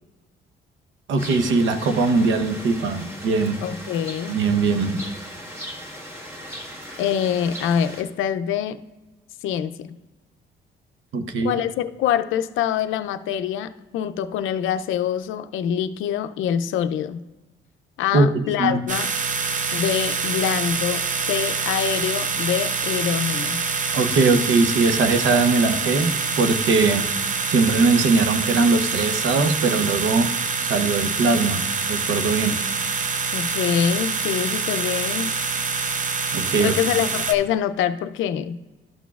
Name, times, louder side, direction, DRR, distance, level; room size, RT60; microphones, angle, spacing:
voice 1, 1.1-3.6 4.3-5.1 11.1-11.5 18.1-18.8 23.9-30.3 30.6-32.6 36.3-36.8, right 3 dB, 70° right, 9 dB, 0.8 m, -21 dB
sound 1, 1.2-8.0, equal, 10° right, 1.6 m, -38 dB
voice 2, 3.6-4.4 7.0-8.8 9.4-10.0 11.4-17.2 18.0-19.1 19.7-23.6 33.3-35.4 36.6-38.6, left 9 dB, 85° left, 11 dB, 0.5 m, -25 dB
sound 2, 18.9-37.3, right 5 dB, 40° right, 0.7 m, -26 dB
12.0 x 6.1 x 2.4 m, 1.1 s
cardioid pair, 90°, 20 cm